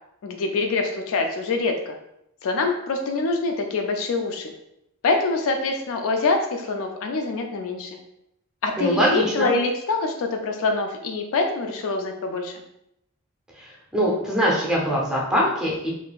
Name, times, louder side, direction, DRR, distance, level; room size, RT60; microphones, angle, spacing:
voice 1, 0.2-2.0 2.4-4.5 5.0-7.9 8.6-12.5, left 3 dB, 65° left, 4 dB, 0.4 m, -25 dB
voice 2, 8.8-9.5 13.6-15.9, equal, 5° right, -4 dB, 0.7 m, -23 dB
3.6 x 2.5 x 2.3 m, 0.82 s
head